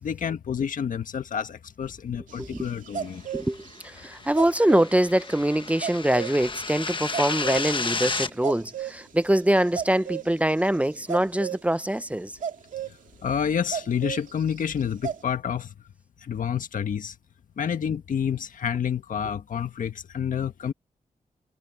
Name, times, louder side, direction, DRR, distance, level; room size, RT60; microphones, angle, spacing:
voice 1, 0.0-3.2 13.2-15.7 16.3-17.1 17.6-20.7, left 8 dB, 80° left, 1.6 m, -29 dB
sound 1, 2.3-3.8 4.4-5.0 5.8-6.5 7.1-8.0 8.3-9.0 9.6-10.3 11.1-11.6 12.4-12.9 13.7-14.5 14.8-15.2, right 8 dB, 75° right, 2.2 m, -32 dB
voice 2, 3.3-12.3, right 1 dB, 10° right, 0.7 m, -24 dB
sound 2, 3.8-8.3, left 4 dB, 40° left, 1.3 m, -32 dB
cardioid pair, 70°, 13 cm